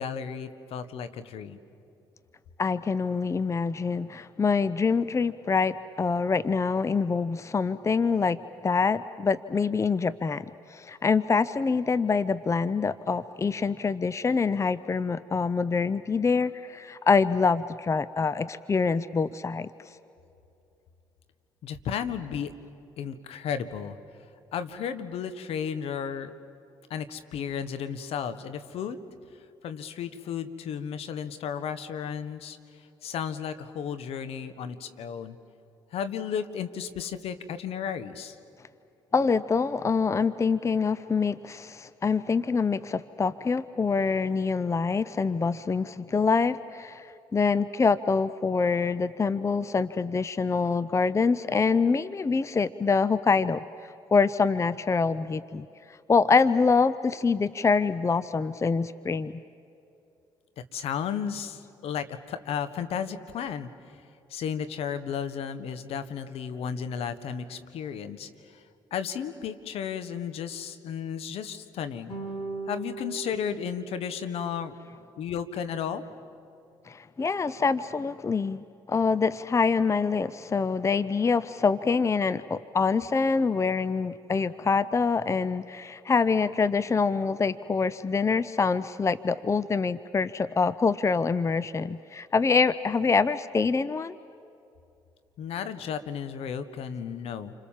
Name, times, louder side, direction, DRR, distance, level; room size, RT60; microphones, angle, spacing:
voice 1, 0.0-1.6 21.6-22.5 23.0-24.0 24.5-26.3 26.9-29.0 29.6-32.6 33.0-35.4 35.9-38.4 60.7-63.7 64.3-68.6 68.9-72.1 72.7-74.7 75.2-76.0 95.4-97.5, left 7 dB, 65° left, 11 dB, 1.4 m, -33 dB
voice 2, 2.6-19.7 39.1-53.6 54.1-55.7 56.1-59.4 76.9-94.2, left 4 dB, 25° left, 16 dB, 0.7 m, -25 dB
sound 1, 72.1-74.6, right 4 dB, 50° left, 6.3 m, -39 dB
29.0 x 25.5 x 7.4 m, 2.7 s
hypercardioid pair, 55°, 11 cm